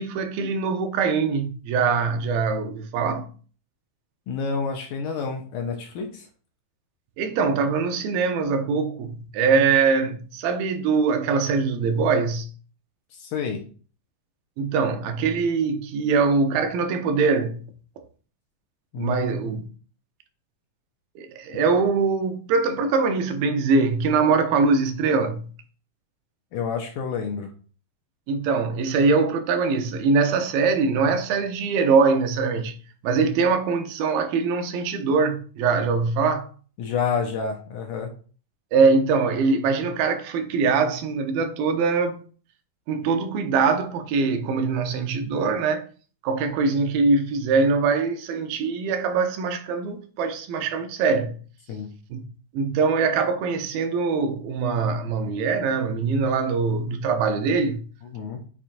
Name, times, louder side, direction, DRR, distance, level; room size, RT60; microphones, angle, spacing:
voice 1, 0.0-3.3 7.2-12.5 14.6-17.7 18.0-18.1 19.0-19.7 21.2-25.4 28.3-32.8 33.0-36.5 38.7-42.2 42.9-45.9 46.2-51.4 52.1-52.2 52.5-57.8, right 4 dB, 80° right, 2.5 m, -23 dB
voice 2, 4.3-6.3 13.2-13.6 18.9-19.2 26.5-27.5 36.8-38.1 51.7-51.9 58.1-58.4, left 6 dB, 70° left, 2.2 m, -29 dB
7.3 x 6.8 x 2.5 m
omnidirectional pair, 4.2 m